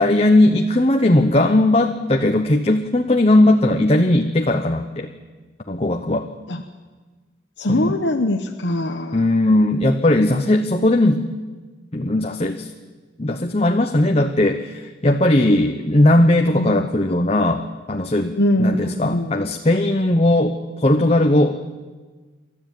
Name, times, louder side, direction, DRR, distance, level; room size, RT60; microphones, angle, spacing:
voice 1, 0.0-5.1 5.7-6.3 7.7-8.0 9.1-11.2 11.9-12.7 13.2-21.5, left 1 dB, 30° left, 5 dB, 0.9 m, -18 dB
voice 2, 7.6-9.2 16.5-16.7 18.4-19.3, left 1 dB, 70° left, 4 dB, 1.1 m, -22 dB
28.5 x 13.0 x 9.2 m, 1.3 s
head